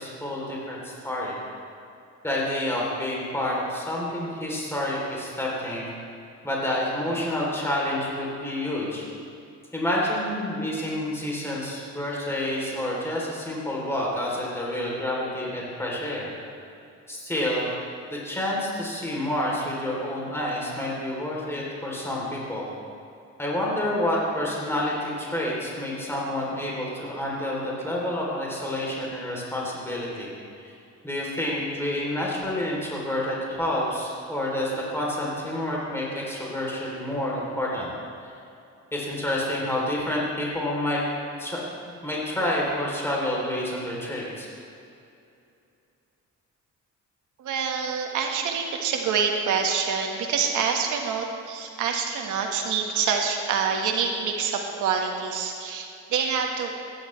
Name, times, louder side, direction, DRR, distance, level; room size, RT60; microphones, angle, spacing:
voice 1, 0.0-1.4 2.2-5.9 6.4-9.1 9.7-16.3 17.1-17.7 18.1-22.7 23.4-30.3 31.0-37.9 38.9-41.0 41.4-41.6 42.0-44.5, left 1 dB, 10° left, -4 dB, 3.2 m, -28 dB
voice 2, 47.4-56.7, right 6 dB, 85° right, 2 dB, 1.5 m, -26 dB
15.5 x 11.0 x 3.2 m, 2.6 s
cardioid pair, 90°, 30 cm